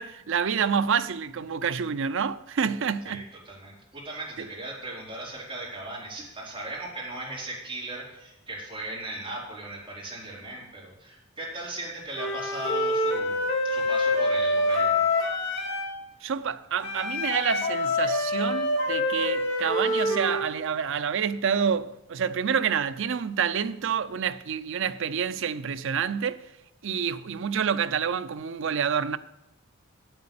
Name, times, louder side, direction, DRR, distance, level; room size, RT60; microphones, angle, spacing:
voice 1, 0.0-3.3 4.4-4.5 16.2-26.5 26.8-29.2, right 7 dB, 60° right, 0.5 m, -28 dB
voice 2, 3.1-15.1, right 2 dB, 25° right, 4.4 m, -38 dB
Wind instrument woodwind instrument, 12.1-16.0 16.8-20.5, left 2 dB, 55° left, 2.5 m, -26 dB
8.4 x 8.0 x 8.8 m
head